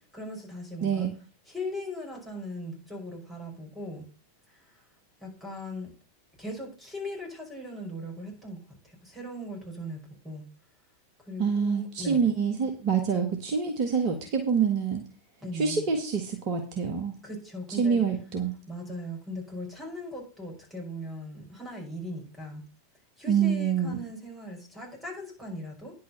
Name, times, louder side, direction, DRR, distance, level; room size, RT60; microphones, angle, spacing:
voice 1, 0.1-1.1 1.5-4.0 4.5-4.8 5.2-5.9 6.4-10.0 10.2-10.4 11.2-12.2 15.4-15.9 17.2-18.0 18.7-22.6 23.2-25.9, left 1 dB, 5° right, -2 dB, 6.0 m, -39 dB
voice 2, 0.8-1.1 11.4-15.0 15.5-17.1 17.8-18.5 23.3-24.0, right 6 dB, 40° right, 4 dB, 1.7 m, -26 dB
10.0 x 5.5 x 6.8 m, 0.38 s
figure-of-eight pair, 90°, 0 cm